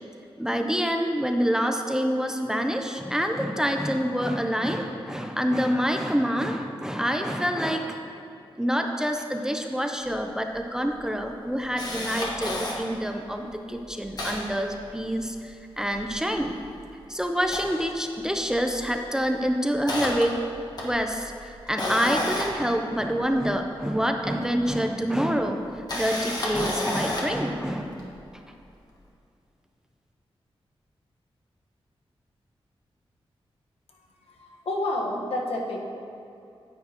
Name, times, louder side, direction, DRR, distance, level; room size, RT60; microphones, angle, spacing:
voice 1, 0.4-8.0 8.6-16.6 17.1-20.3 20.8-28.0, equal, 5° right, 4 dB, 0.5 m, -27 dB
Camera, 10.1-10.2 10.5-10.6 11.1-12.7 13.4-13.5 13.7-15.4 15.7-16.9 17.3-18.5 18.8-19.0 19.5-23.5 24.6-24.7 25.6-27.4 28.0-28.1, left 1 dB, 40° left, 1.5 m, -31 dB
voice 2, 33.9-35.8, left 1 dB, 80° left, -1 dB, 1.3 m, -30 dB
9.7 x 8.7 x 2.9 m, 2.7 s
wide cardioid pair, 130°, 10 cm